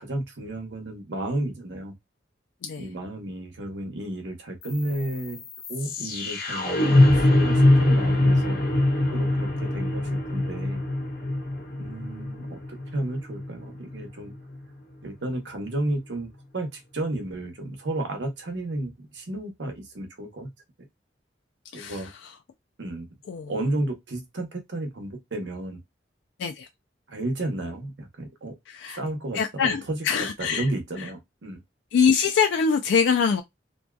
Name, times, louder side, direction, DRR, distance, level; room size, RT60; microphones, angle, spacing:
voice 1, 0.0-1.9 2.8-5.4 5.7-8.6 9.1-10.8 11.8-14.3 15.0-20.5 21.7-22.1 22.8-23.1 23.5-25.8 27.1-28.5 28.9-31.6, right 1 dB, 75° right, 0.8 m, -32 dB
sound 1, 4.6-14.7, left 1 dB, 55° left, 0.7 m, -23 dB
voice 2, 21.7-22.3 23.3-23.5 26.4-26.7 28.7-29.0 29.3-30.7 31.0-31.1 31.9-33.4, left 6 dB, 75° left, 0.3 m, -24 dB
2.6 x 2.3 x 2.2 m
head